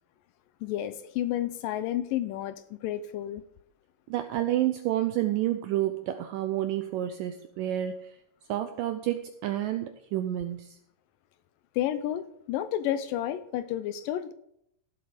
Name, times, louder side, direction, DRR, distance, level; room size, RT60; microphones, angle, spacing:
voice 1, 0.6-3.4 11.8-14.3, left 12 dB, 80° left, 13 dB, 2.0 m, -31 dB
voice 2, 4.1-8.1 8.5-10.8, right 13 dB, 85° right, 8 dB, 2.0 m, -29 dB
16.0 x 8.0 x 5.0 m, 0.73 s
omnidirectional pair, 4.5 m